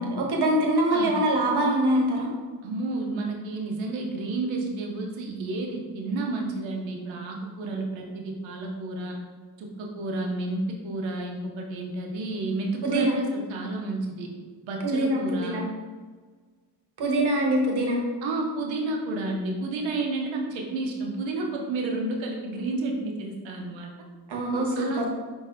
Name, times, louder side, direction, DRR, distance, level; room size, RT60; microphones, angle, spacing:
voice 1, 0.0-2.3 12.8-13.2 14.8-15.7 17.0-18.0 24.3-25.1, right 1 dB, 60° right, 0 dB, 1.2 m, -24 dB
voice 2, 2.6-9.1 9.6-14.3 14.7-15.6 18.2-23.9 24.5-25.1, right 2 dB, 85° right, 1 dB, 0.7 m, -31 dB
5.5 x 2.7 x 2.6 m, 1.5 s
supercardioid pair, 50°, 45 cm